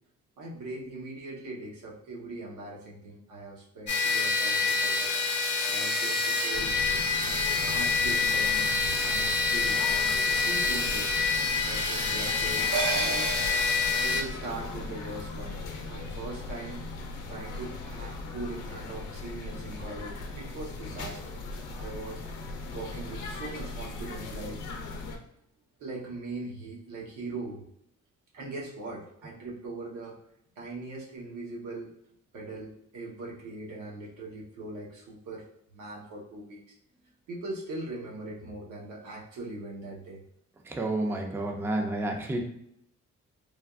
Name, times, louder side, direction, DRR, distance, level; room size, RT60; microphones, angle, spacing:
voice 1, 0.4-5.1 5.7-6.7 7.7-9.8 10.4-11.3 11.6-13.3 14.0-15.6 15.9-16.8 17.3-21.4 21.8-22.2 22.7-24.6 25.8-27.6 28.3-30.2 30.6-31.9 32.3-35.4 35.7-36.6 37.3-40.2, right 2 dB, 85° right, -3 dB, 0.9 m, -40 dB
sound 1, 3.9-14.2, left 4 dB, 35° left, 0.7 m, -27 dB
sound 2, 6.5-25.2, left 3 dB, 80° left, 0.6 m, -39 dB
sound 3, 12.7-17.4 17.8-17.9, right 4 dB, 50° right, 0.7 m, -36 dB
voice 2, 40.7-42.4, right 2 dB, 10° right, 3 dB, 0.4 m, -30 dB
3.4 x 2.3 x 2.3 m, 0.74 s
cardioid pair, 90°, 30 cm